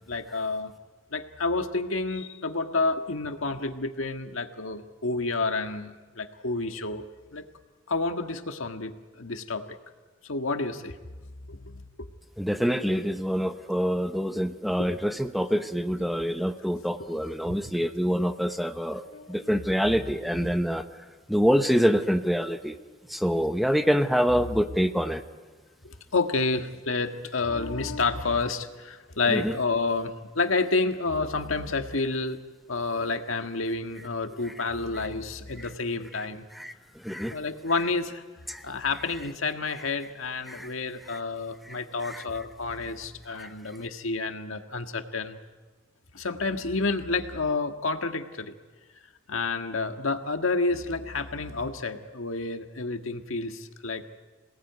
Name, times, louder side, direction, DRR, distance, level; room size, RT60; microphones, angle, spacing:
voice 1, 0.1-0.7 1.1-7.0 7.3-7.4 7.9-9.8 10.2-11.0 11.5-11.8 14.8-14.9 19.0-19.5 19.8-20.0 20.3-20.5 25.8-32.4 32.7-36.5 37.3-38.2 38.6-45.4 46.1-48.5 49.3-54.0, left 3 dB, 85° left, 6 dB, 1.7 m, -29 dB
voice 2, 12.4-19.0 19.3-20.8 21.3-22.8 23.1-25.2 29.3-29.5 35.6-35.7 36.5-36.7 37.0-37.4 38.5-38.6 40.5-40.7 41.1-41.2 41.7-41.8 42.0-42.2 43.4-43.5, equal, ahead, 8 dB, 0.9 m, -26 dB
27.0 x 18.5 x 9.4 m, 1.3 s
head